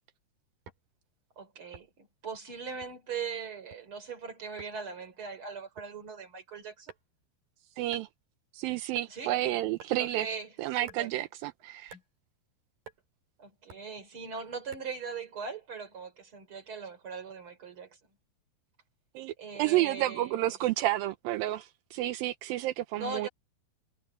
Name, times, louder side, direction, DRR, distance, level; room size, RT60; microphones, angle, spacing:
sound 1, 0.7-0.9 1.7-2.1 2.8-3.1 3.5-3.8 4.6-4.8 5.8-6.0 6.9-7.3 7.9-8.1 8.9-9.1 9.8-10.0 10.8-11.1 11.9-12.1 12.9-13.0 13.7-13.9 14.7-15.0, right 5 dB, 55° right, 6.3 m, -50 dB
voice 1, 1.4-6.9 9.1-9.4 10.0-11.1 13.4-18.0 19.4-20.6 23.0-23.3, right 5 dB, 30° right, 4.5 m, -40 dB
voice 2, 7.8-8.1 8.5-12.0 19.2-23.3, right 15 dB, 80° right, 2.2 m, -31 dB
omnidirectional pair, 4.8 m